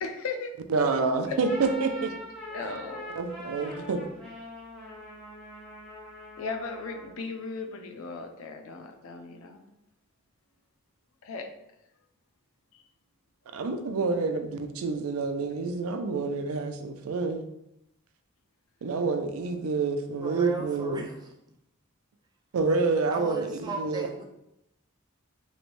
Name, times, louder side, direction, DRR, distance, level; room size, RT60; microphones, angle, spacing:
voice 1, 0.0-0.5 1.3-1.4 2.5-3.1 6.4-9.7 11.2-11.5, left 4 dB, 75° left, 5 dB, 0.5 m, -36 dB
voice 2, 0.7-2.1 2.6-2.8 3.2-4.0 13.5-17.4 18.8-21.1 22.5-24.1, right 4 dB, 80° right, 7 dB, 0.4 m, -28 dB
sound 1, 1.4-7.2, equal, 5° left, 0.8 m, -43 dB
voice 3, 20.2-21.3 23.1-24.2, right 2 dB, 20° right, 0 dB, 0.4 m, -37 dB
3.1 x 3.1 x 2.5 m, 0.82 s
head